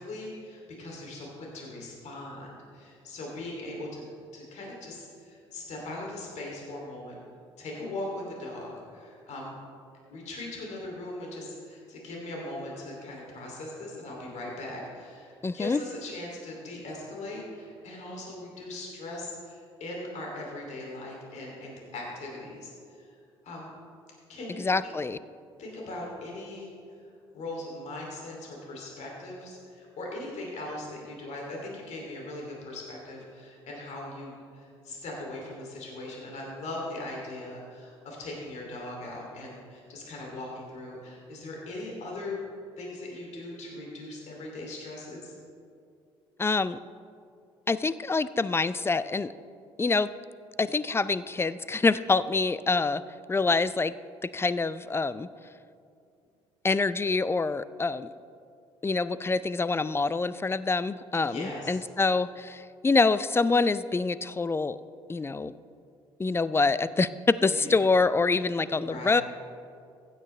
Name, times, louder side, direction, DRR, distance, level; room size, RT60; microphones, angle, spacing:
voice 1, 0.0-4.1 4.3-7.2 7.6-9.5 10.1-23.1 23.4-23.7 24.3-24.9 25.6-26.7 27.3-42.4 42.8-45.3 61.2-61.8 67.5-67.8 68.8-69.2, left 2 dB, 55° left, -2 dB, 2.8 m, -39 dB
voice 2, 15.4-15.8 24.6-25.2 46.4-46.8 47.7-49.3 49.8-50.1 50.6-53.0 53.3-53.9 54.2-55.3 56.6-58.1 58.8-64.8 65.1-65.5 66.2-69.2, left 3 dB, 15° left, 16 dB, 0.4 m, -26 dB
15.5 x 9.0 x 3.3 m, 2.4 s
hypercardioid pair, 55°, 14 cm